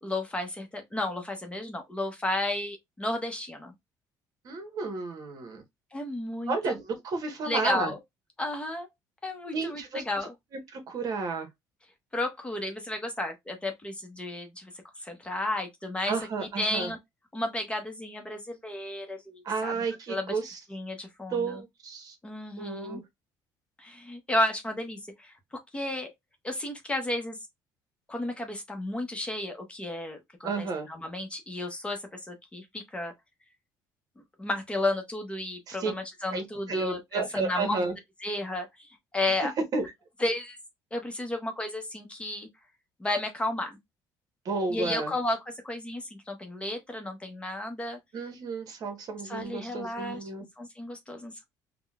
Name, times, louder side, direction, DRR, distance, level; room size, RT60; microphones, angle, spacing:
voice 1, 0.0-3.7 5.9-6.8 7.4-8.0 8.4-8.9 9.2-10.3 12.1-14.7 15.0-17.0 17.3-19.7 20.1-20.4 20.7-21.6 22.2-23.0 23.8-26.1 26.4-27.4 28.1-33.1 34.4-37.8 38.2-39.5 40.2-40.6 40.9-42.5 43.0-43.8 44.7-48.0 49.3-50.2 50.6-51.5, left 1 dB, 15° left, 0.8 m, -33 dB
voice 2, 4.4-5.6 6.5-7.9 9.5-10.0 10.7-11.5 16.1-16.9 19.4-20.6 21.3-22.1 22.6-23.0 30.4-30.9 35.7-35.9 36.3-37.9 39.7-39.9 44.4-45.1 48.1-50.4, right 4 dB, 50° right, 1.1 m, -32 dB
3.7 x 2.2 x 2.3 m
cardioid pair, 120°, 8 cm